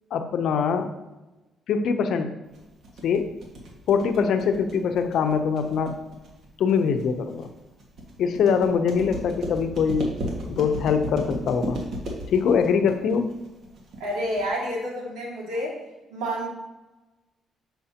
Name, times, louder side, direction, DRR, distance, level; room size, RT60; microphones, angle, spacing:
voice 1, 0.1-0.9 1.7-2.4 3.0-3.3 3.9-5.9 6.6-7.5 8.2-10.1 10.5-11.8 12.3-13.3, left 6 dB, 75° left, 7 dB, 0.6 m, -23 dB
sound 1, 2.5-14.5, right 1 dB, 60° right, 1.7 m, -35 dB
voice 2, 14.0-15.8 16.1-16.5, equal, 90° right, -3 dB, 2.0 m, -29 dB
6.9 x 5.7 x 2.8 m, 1.1 s
cardioid pair, 90°, 0 cm